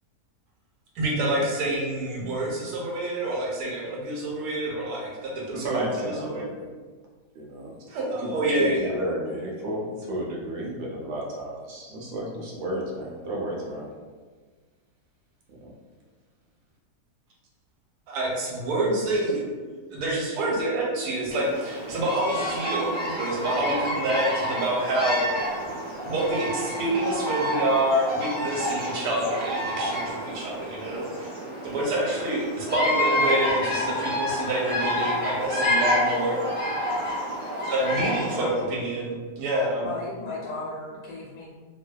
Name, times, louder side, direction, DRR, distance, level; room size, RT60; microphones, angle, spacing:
voice 1, 0.9-5.8 6.2-6.5 7.9-8.9 18.1-19.5 19.9-25.2 26.0-31.3 31.6-36.4 37.6-39.9, right 1 dB, 90° right, -2 dB, 1.2 m, -27 dB
voice 2, 5.5-6.7 7.3-7.8 8.2-13.9 15.5-15.7, right 1 dB, 65° right, -4 dB, 0.6 m, -33 dB
Bird vocalization bird call bird song, 21.3-38.5, equal, 15° right, 0.4 m, -29 dB
voice 3, 38.2-38.7 39.8-41.5, left 2 dB, 85° left, -6 dB, 1.2 m, -35 dB
2.6 x 2.2 x 2.2 m, 1.4 s
omnidirectional pair, 1.7 m